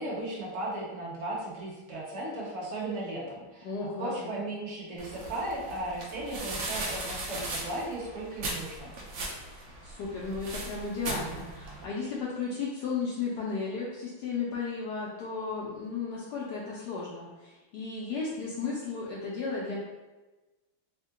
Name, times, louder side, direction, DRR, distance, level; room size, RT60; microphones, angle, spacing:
voice 1, 0.0-8.9, right 1 dB, 45° right, -6 dB, 1.1 m, -36 dB
voice 2, 3.6-4.3 9.8-19.8, left 4 dB, 80° left, -5 dB, 0.9 m, -34 dB
sound 1, 5.0-11.8, right 2 dB, 70° right, 1.1 m, -38 dB
3.7 x 2.1 x 3.6 m, 1.1 s
omnidirectional pair, 2.3 m